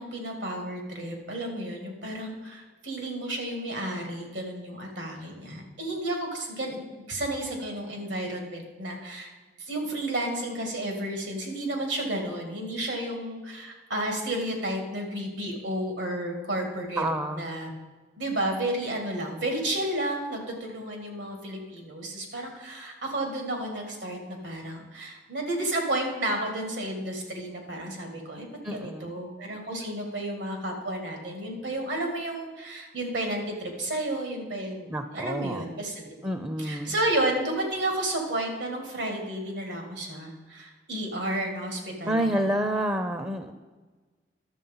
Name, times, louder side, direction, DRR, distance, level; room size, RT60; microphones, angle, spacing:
voice 1, 0.0-6.8 7.1-9.3 9.6-17.1 17.3-17.7 18.2-36.3 36.6-42.5, right 1 dB, 85° right, 2 dB, 2.6 m, -32 dB
voice 2, 17.0-17.5 28.6-29.1 34.9-35.7 36.2-36.9 42.0-43.5, right 1 dB, 15° right, 8 dB, 0.5 m, -28 dB
11.5 x 7.3 x 5.6 m, 1.3 s
head